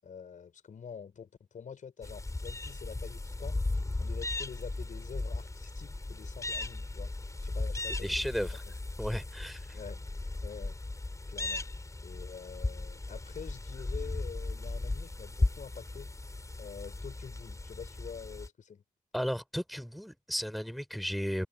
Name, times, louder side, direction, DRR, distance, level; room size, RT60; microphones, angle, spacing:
voice 1, 0.0-3.6 4.0-7.1 7.4-8.3 9.7-10.8 11.3-11.7 12.0-16.1 16.6-18.8, left 7 dB, 60° left, 5.2 m, -46 dB
sound 1, 2.0-18.5, left 2 dB, 20° left, 4.9 m, -36 dB
voice 2, 8.0-8.6 9.0-9.8 19.1-21.5, equal, ahead, 4.2 m, -34 dB
cardioid pair, 60°, 15 cm